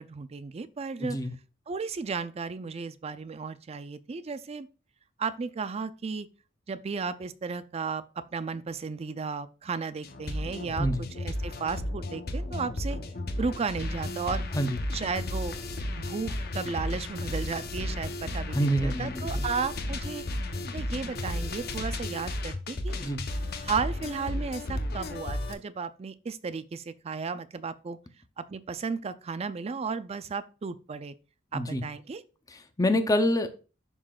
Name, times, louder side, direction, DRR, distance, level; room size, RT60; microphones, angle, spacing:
voice 1, 0.0-1.2 1.7-4.7 5.2-6.3 6.7-8.0 8.3-13.0 13.4-14.5 14.9-15.6 16.0-20.2 20.7-23.0 23.6-28.0 28.4-31.1 31.5-32.2, right 5 dB, 35° right, 0.4 m, -34 dB
voice 2, 1.0-1.3 10.8-11.0 14.5-14.8 18.5-19.4 23.0-23.2 31.5-31.8 32.5-33.5, equal, 20° left, 0.6 m, -27 dB
sound 1, 10.0-25.5, left 1 dB, 55° left, 0.8 m, -33 dB
11.0 x 3.8 x 2.4 m
head